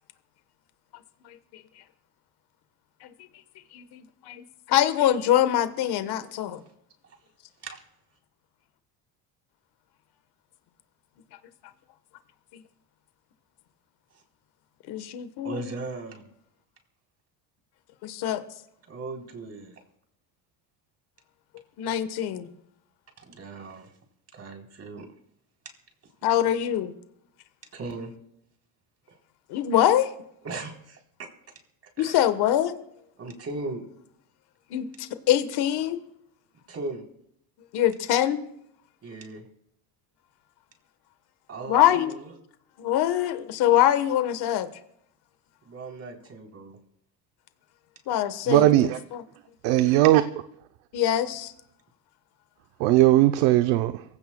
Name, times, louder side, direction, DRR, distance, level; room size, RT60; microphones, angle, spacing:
voice 1, 3.7-6.6 14.9-15.7 18.0-18.4 21.8-22.5 26.2-26.9 29.5-30.1 32.0-32.7 34.7-36.0 37.7-38.4 41.7-42.1 42.8-44.7 48.1-48.7 49.1-49.2 50.9-51.5, left 11 dB, 60° left, 1.3 m, -24 dB
voice 2, 15.4-16.2 18.9-19.7 23.2-23.9 24.3-25.1 27.7-28.1 30.4-31.3 32.0-32.2 33.2-33.9 36.7-37.0 39.0-39.4 41.5-42.3 45.7-46.8, right 3 dB, 35° right, 3.6 m, -37 dB
voice 3, 48.5-49.0 49.6-50.2 52.8-54.0, right 15 dB, 85° right, 0.8 m, -19 dB
24.0 x 16.0 x 2.3 m
cardioid pair, 120°, 44 cm